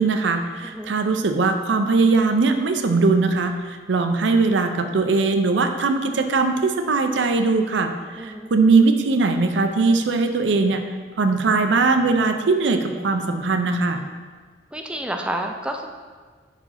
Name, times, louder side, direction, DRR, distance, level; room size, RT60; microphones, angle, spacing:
voice 1, 0.0-10.8 11.2-14.0, right 3 dB, 70° right, 7 dB, 0.5 m, -20 dB
voice 2, 0.6-0.9 8.2-8.5 14.7-15.9, right 1 dB, 5° right, 4 dB, 0.4 m, -30 dB
5.0 x 4.9 x 5.6 m, 1.5 s
head